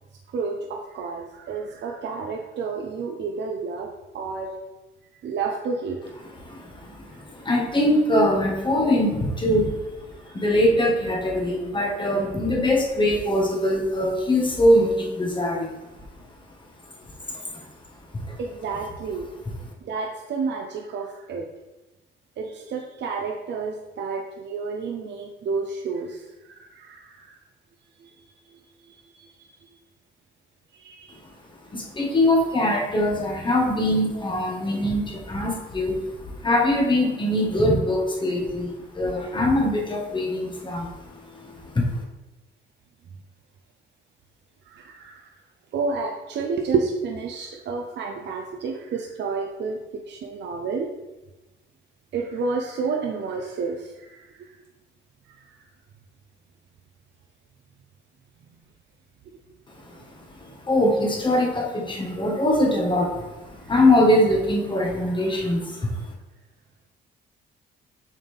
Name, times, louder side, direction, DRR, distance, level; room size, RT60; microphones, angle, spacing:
voice 1, 0.3-3.9 4.1-4.5 5.2-6.0 18.4-19.3 19.8-21.4 22.4-26.2 26.5-27.3 28.0-28.1 28.9-29.0 30.7-31.1 34.1-34.4 44.7-45.2 45.7-49.8 50.1-50.9 52.1-54.3, right 4 dB, 65° right, 1 dB, 0.8 m, -30 dB
voice 2, 6.4-9.8 10.3-15.7 17.3-17.7 18.1-18.4 31.7-36.1 36.4-42.0 60.0-60.1 60.6-65.9, left 1 dB, 25° left, 0 dB, 1.6 m, -22 dB
7.3 x 4.2 x 3.5 m, 1.1 s
cardioid pair, 90°, 20 cm